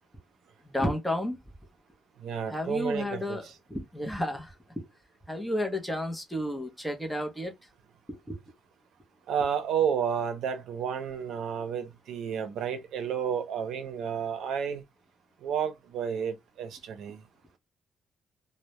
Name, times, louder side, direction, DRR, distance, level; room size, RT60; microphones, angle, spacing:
voice 1, 0.7-1.4 2.5-4.9 5.3-7.5 8.1-8.4, left 1 dB, 5° left, 0.6 m, -32 dB
voice 2, 2.2-3.4 9.3-14.8 15.4-17.2, right 7 dB, 85° right, 0.5 m, -31 dB
2.1 x 2.0 x 2.8 m
cardioid pair, 145°, 0 cm